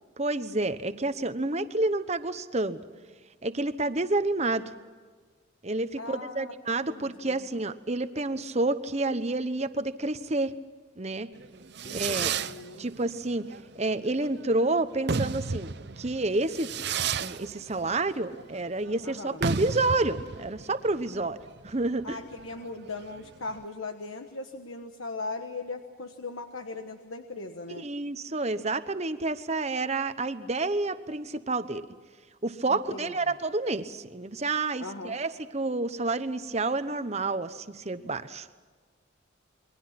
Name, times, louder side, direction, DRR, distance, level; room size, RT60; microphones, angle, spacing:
voice 1, 0.2-2.8 3.4-4.7 5.6-10.5 11.0-11.3 11.9-12.4 12.8-13.4 13.7-15.7 16.0-16.7 17.2-21.4 21.6-22.2 27.7-31.8 32.4-38.5, right 2 dB, 35° right, 11 dB, 1.0 m, -29 dB
voice 2, 6.0-6.6 6.9-7.5 11.8-12.9 19.0-19.4 22.0-27.8 32.7-33.3 34.8-35.2, left 3 dB, 85° left, 6 dB, 1.3 m, -39 dB
Fireworks, 11.4-23.6, right 5 dB, 55° right, 0.7 m, -34 dB
29.0 x 23.0 x 5.9 m, 1.5 s
head